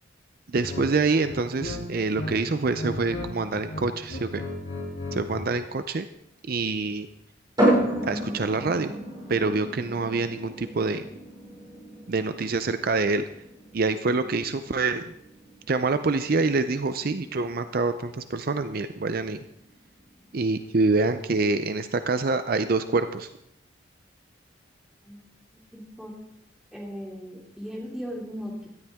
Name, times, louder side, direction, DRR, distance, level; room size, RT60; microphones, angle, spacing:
voice 1, 0.5-4.5 5.1-6.1 6.5-7.1 8.0-8.9 9.3-11.1 12.1-13.2 13.7-15.1 15.7-19.4 20.3-23.3, right 3 dB, 50° right, 10 dB, 0.5 m, -26 dB
sound 1, 0.6-0.9 1.2-2.3 2.6-3.3 3.6-5.5, left 1 dB, 60° left, 3.6 m, -34 dB
sound 2, 7.6-21.1, right 1 dB, 20° right, 6.7 m, -32 dB
voice 2, 25.7-26.1 26.7-28.7, equal, ahead, -3 dB, 2.7 m, -37 dB
17.5 x 13.0 x 3.6 m, 0.79 s
head